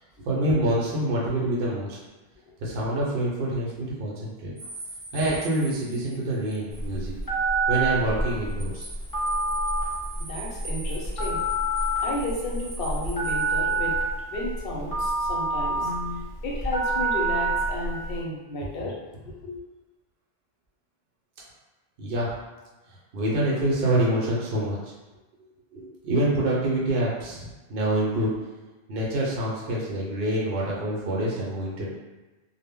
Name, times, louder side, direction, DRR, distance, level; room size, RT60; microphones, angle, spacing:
voice 1, 0.2-2.0 2.6-4.5 5.1-7.1 7.7-8.9 22.0-22.3 23.1-24.9 25.7-28.3 28.9-31.9, right 1 dB, 70° right, -5 dB, 0.8 m, -26 dB
sound 1, 4.6-6.9 7.2-7.3 8.3-14.0, right 2 dB, 45° right, 0.5 m, -42 dB
Telephone, 6.7-18.2, right 2 dB, 25° left, 0.5 m, -27 dB
voice 2, 10.3-11.4 12.0-14.0 14.3-19.6, left 1 dB, 65° left, -3 dB, 0.8 m, -33 dB
2.0 x 2.0 x 3.5 m, 1.1 s
omnidirectional pair, 1.1 m